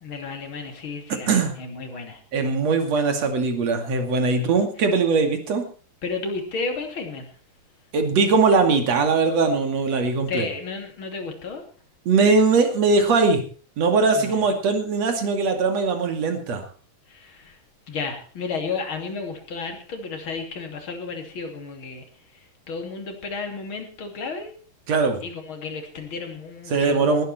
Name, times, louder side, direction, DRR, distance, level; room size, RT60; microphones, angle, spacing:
voice 1, 0.0-2.2 4.3-4.5 6.0-7.3 10.3-11.6 14.1-14.4 17.1-17.6 17.9-22.0 22.7-24.5 25.2-27.2, left 4 dB, 35° left, 4 dB, 3.2 m, -32 dB
voice 2, 2.3-5.7 7.9-10.5 12.0-13.4 13.8-16.6 24.9-25.2 26.7-27.2, right 4 dB, 45° right, 6 dB, 3.2 m, -20 dB
19.5 x 12.0 x 4.4 m, 0.40 s
omnidirectional pair, 4.8 m